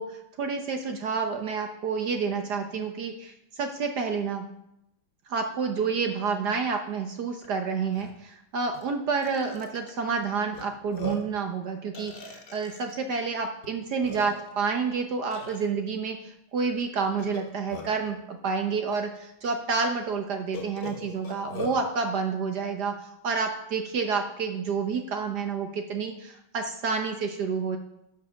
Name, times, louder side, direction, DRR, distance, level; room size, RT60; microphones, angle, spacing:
voice 1, 0.0-4.5 5.3-27.8, right 5 dB, 60° right, 5 dB, 1.4 m, -29 dB
Burping eructation, 7.4-7.5 7.9-8.1 8.7-8.9 9.2-9.9 10.5-10.6 10.9-11.4 11.9-12.9 13.6-13.7 14.0-14.6 15.3-15.7 17.2-18.1 18.9-19.0 19.4-19.5 20.5-21.8, left 1 dB, 60° left, 2.4 m, -39 dB
12.0 x 7.5 x 6.4 m, 0.82 s
omnidirectional pair, 2.2 m